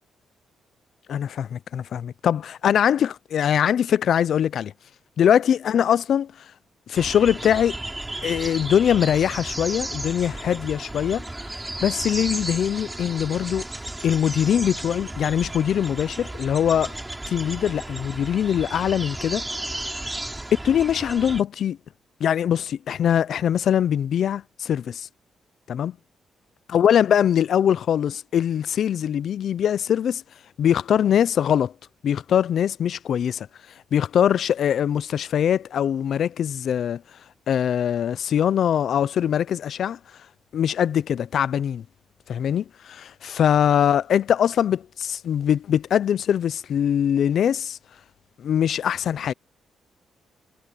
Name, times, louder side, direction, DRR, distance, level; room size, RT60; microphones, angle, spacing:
voice 1, 1.1-4.7 5.2-6.3 6.9-7.8 8.2-11.2 11.8-13.6 14.0-16.9 17.3-19.5 19.7-19.8 20.6-21.8 22.2-25.1 25.7-26.0 26.7-30.2 30.6-31.7 32.0-33.5 33.9-37.0 37.5-40.0 40.5-41.8 42.3-47.8 48.4-49.3, left 9 dB, 60° left, 0.5 m, -22 dB
sound 1, 6.9-21.4, right 2 dB, 10° right, 4.4 m, -34 dB
cardioid pair, 140°, 0 cm